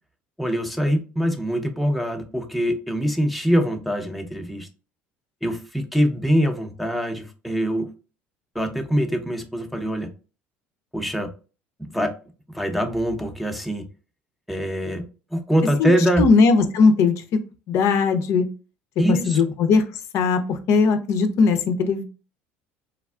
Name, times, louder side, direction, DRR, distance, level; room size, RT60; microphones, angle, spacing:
voice 1, 0.4-4.7 5.4-7.9 8.5-10.1 10.9-11.3 11.8-12.1 12.5-13.8 14.5-16.3 19.0-19.4, equal, ahead, 4 dB, 0.7 m, -23 dB
voice 2, 16.2-17.2 17.7-18.5 19.1-19.8 20.1-22.0, left 4 dB, 60° left, 8 dB, 0.5 m, -19 dB
3.4 x 2.3 x 2.3 m, 0.34 s
hypercardioid pair, 75°, 6 cm